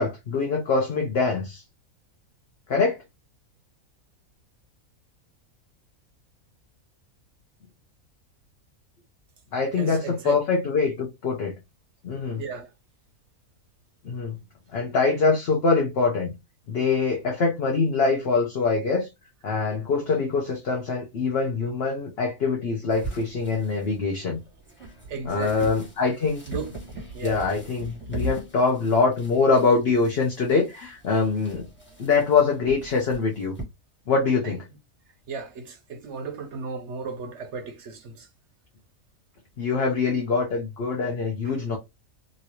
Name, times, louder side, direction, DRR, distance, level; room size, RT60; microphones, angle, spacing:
voice 1, 0.0-1.6 2.7-3.0 9.5-11.5 12.0-12.4 14.0-14.4 14.7-16.3 16.7-19.1 19.4-24.4 25.3-26.4 27.2-31.7 32.0-33.5 34.1-34.6 39.6-41.8, left 4 dB, 55° left, 0.8 m, -24 dB
voice 2, 9.8-10.4 12.4-12.7 25.1-25.7 26.5-27.4 34.4-34.6 35.3-38.3 41.4-41.5, right 5 dB, 60° right, 0.9 m, -35 dB
sound 1, 22.9-33.6, right 1 dB, 10° left, 1.2 m, -40 dB
3.1 x 2.6 x 2.9 m
omnidirectional pair, 1.5 m